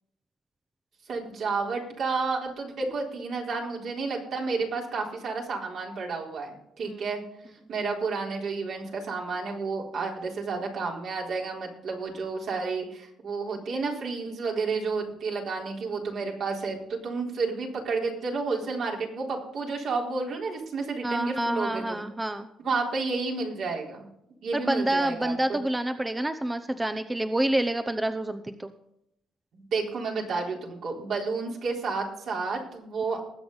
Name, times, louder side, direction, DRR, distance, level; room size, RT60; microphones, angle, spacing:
voice 1, 1.1-7.2 7.7-22.0 22.6-24.1 24.4-25.6 29.7-33.2, right 4 dB, 65° right, -1 dB, 4.0 m, -31 dB
voice 2, 21.0-22.5 24.5-28.7, right 1 dB, 15° right, 9 dB, 0.8 m, -28 dB
20.5 x 7.8 x 4.0 m, 0.80 s
cardioid pair, 90°, 0 cm